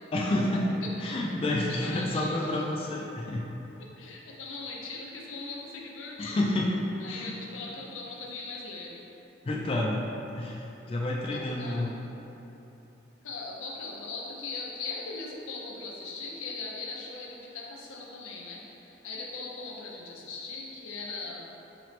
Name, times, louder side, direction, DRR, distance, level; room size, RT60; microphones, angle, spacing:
voice 1, 0.1-0.7 1.0-3.5 6.2-7.4 9.5-10.1 10.3-11.9, left 1 dB, 30° left, -2 dB, 0.3 m, -29 dB
voice 2, 1.7-2.6 3.8-6.4 7.0-9.0 11.3-12.2 13.2-21.5, left 3 dB, 90° left, -2 dB, 0.6 m, -40 dB
4.9 x 2.9 x 3.2 m, 3.0 s
head